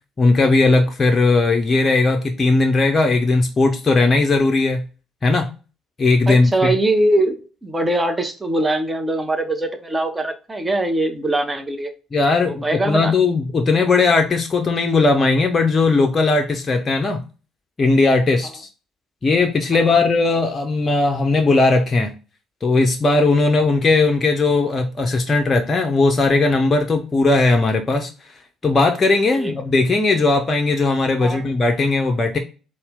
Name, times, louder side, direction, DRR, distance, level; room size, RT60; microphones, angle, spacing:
voice 1, 0.2-4.8 5.2-5.5 6.0-6.7 12.1-17.2 17.8-18.7 19.2-22.1 22.6-28.1 28.6-32.4, left 3 dB, 30° left, 4 dB, 0.6 m, -17 dB
voice 2, 6.3-11.9 12.4-13.1 19.9-20.0 29.3-29.5 31.2-31.4, right 1 dB, 20° right, 6 dB, 0.7 m, -22 dB
4.1 x 2.1 x 3.4 m, 0.33 s
figure-of-eight pair, 50°, 0 cm